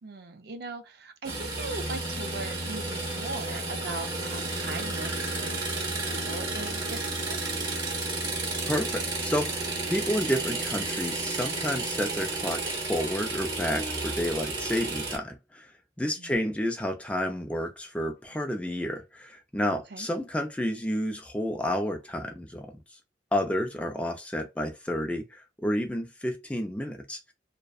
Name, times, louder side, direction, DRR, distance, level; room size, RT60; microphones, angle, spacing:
voice 1, 0.0-5.7 6.0-7.7 16.0-16.4 19.9-20.1, right 3 dB, 55° right, 0.5 m, -40 dB
sound 1, 1.2-15.2, right 2 dB, 25° right, 0.8 m, -32 dB
voice 2, 8.6-15.7 16.0-22.7 23.3-27.2, equal, 5° left, 0.4 m, -30 dB
2.5 x 2.1 x 2.3 m
head